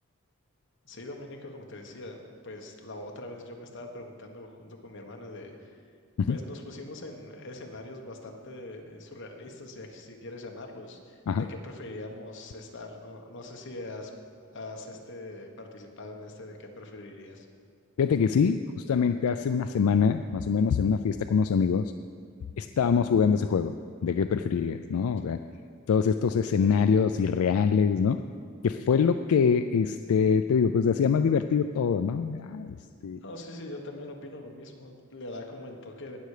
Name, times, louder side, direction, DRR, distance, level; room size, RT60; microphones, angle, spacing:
voice 1, 0.8-5.7 6.3-14.1 14.5-17.4 22.9-23.1 33.2-36.2, left 2 dB, 60° left, 2 dB, 1.4 m, -42 dB
voice 2, 18.0-21.9 22.6-23.8 24.0-25.4 25.9-28.2 28.6-32.8 33.0-33.2, left 6 dB, 85° left, 9 dB, 0.4 m, -24 dB
18.5 x 6.8 x 4.9 m, 2.1 s
head